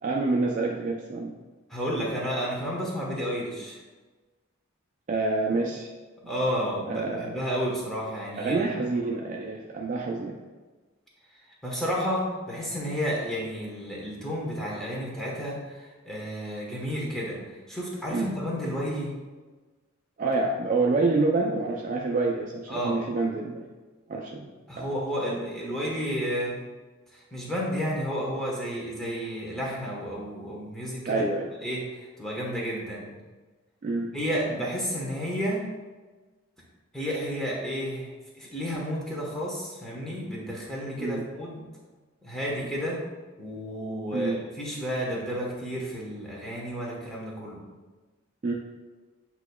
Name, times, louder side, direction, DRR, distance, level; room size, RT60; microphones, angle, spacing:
voice 1, 0.0-1.3 5.1-5.9 6.9-7.4 8.4-10.4 18.1-18.3 20.2-23.7 24.1-24.9 31.0-31.5 33.8-34.2 41.0-41.2 44.1-44.4 48.4-48.5, right 3 dB, 40° right, -1 dB, 0.4 m, -27 dB
voice 2, 1.7-3.8 6.3-8.7 11.6-19.1 22.7-23.0 24.7-26.6 27.1-31.2 31.6-33.1 34.1-35.6 36.9-41.6 42.2-43.0 43.4-47.6, equal, 5° left, -5 dB, 1.1 m, -31 dB
8.3 x 2.8 x 2.3 m, 1.3 s
head